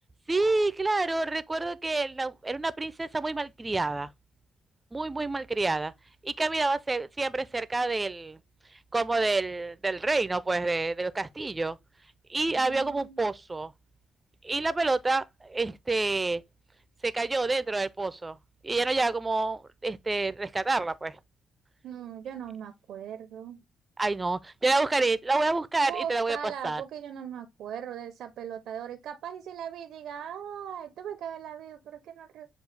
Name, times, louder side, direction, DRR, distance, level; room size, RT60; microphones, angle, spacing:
voice 1, 0.3-4.1 4.9-5.9 6.2-8.4 8.9-11.8 12.3-13.7 14.4-16.4 17.0-18.4 18.6-21.2 24.0-26.8, right 3 dB, 20° right, 0.4 m, -28 dB
voice 2, 12.5-13.2 21.8-23.6 25.8-32.5, right 9 dB, 75° right, 0.5 m, -39 dB
6.6 x 2.3 x 3.2 m
cardioid pair, 90°, 0 cm